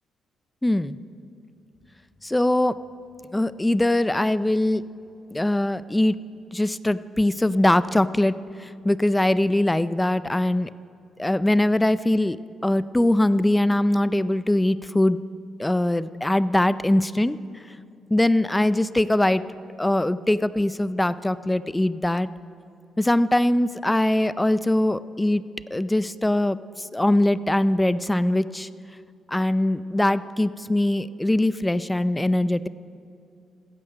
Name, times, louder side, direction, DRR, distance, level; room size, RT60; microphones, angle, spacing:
voice 1, 0.6-1.0 2.2-2.7 3.3-4.8 5.3-6.2 6.5-8.3 8.6-10.7 11.2-12.4 12.6-15.2 15.6-17.4 18.1-19.4 19.8-22.3 23.0-25.4 25.7-28.7 29.3-32.7, left 1 dB, 10° left, 16 dB, 0.4 m, -22 dB
15.0 x 9.9 x 6.5 m, 2.5 s
cardioid pair, 90°, 0 cm